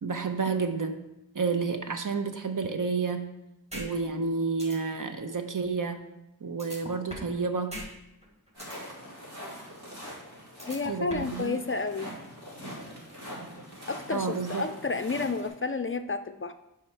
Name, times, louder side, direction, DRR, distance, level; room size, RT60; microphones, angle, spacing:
voice 1, 0.0-1.0 1.3-3.3 3.7-6.0 6.4-7.8 10.9-11.6 14.1-14.7, right 4 dB, 55° right, 6 dB, 0.8 m, -30 dB
sound 1, 3.7-3.9 4.2-4.3 4.6-4.8 6.6-7.4 7.7-7.9 8.2-8.8 10.6-11.4, equal, 15° right, 2.0 m, -39 dB
sound 2, 8.5-15.5, equal, 80° right, 2.8 m, -43 dB
voice 2, 10.7-12.1 13.9-16.5, left 3 dB, 35° left, 9 dB, 0.4 m, -31 dB
7.4 x 4.9 x 4.5 m, 0.89 s
wide cardioid pair, 60°, 38 cm